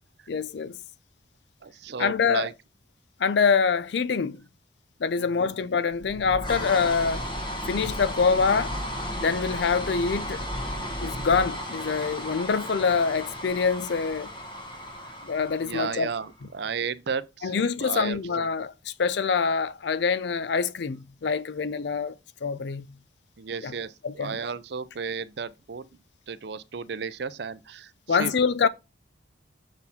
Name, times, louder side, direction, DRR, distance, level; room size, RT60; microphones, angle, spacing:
voice 1, 0.3-0.8 2.0-2.5 3.2-4.4 5.0-7.2 7.7-8.8 9.2-10.4 11.0-14.3 15.2-16.1 17.4-22.1 22.4-22.9 23.6-23.7 24.0-24.4 28.1-28.7, left 5 dB, 60° left, 0.4 m, -25 dB
voice 2, 1.6-2.5 5.2-5.5 15.6-18.5 23.4-25.9 26.3-28.3, right 5 dB, 55° right, 0.5 m, -34 dB
sound 1, 5.9-16.4, equal, 25° left, 1.1 m, -34 dB
6.9 x 4.2 x 4.2 m
head